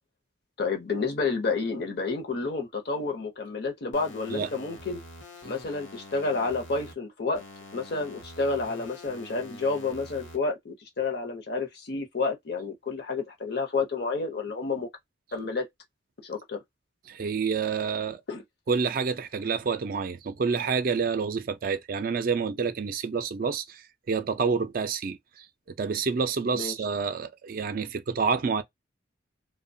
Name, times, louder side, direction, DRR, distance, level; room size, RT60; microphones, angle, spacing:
voice 1, 0.6-5.0 5.4-7.4 7.7-14.9 15.3-15.7 16.2-16.6 18.3-18.4 26.5-26.7, left 4 dB, 55° left, 0.7 m, -30 dB
sound 1, 3.9-6.9 7.3-10.4, left 1 dB, 85° left, 0.9 m, -46 dB
voice 2, 17.1-18.2 18.7-28.6, right 5 dB, 45° right, 0.4 m, -28 dB
2.8 x 2.1 x 2.6 m
head